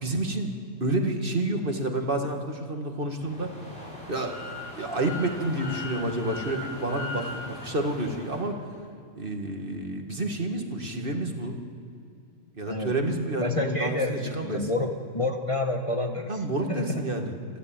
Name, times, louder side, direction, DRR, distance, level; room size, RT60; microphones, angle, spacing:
voice 1, 0.0-0.5 0.8-3.5 4.1-4.4 4.7-8.6 9.2-11.6 12.6-14.7 16.3-17.3, right 1 dB, 45° right, 4 dB, 2.1 m, -29 dB
sound 1, 3.2-8.4, left 1 dB, 45° left, 6.2 m, -39 dB
voice 2, 12.6-13.0 13.4-16.4 16.7-17.0, left 2 dB, 25° left, 3 dB, 1.3 m, -29 dB
27.0 x 11.5 x 8.9 m, 2.5 s
omnidirectional pair, 1.4 m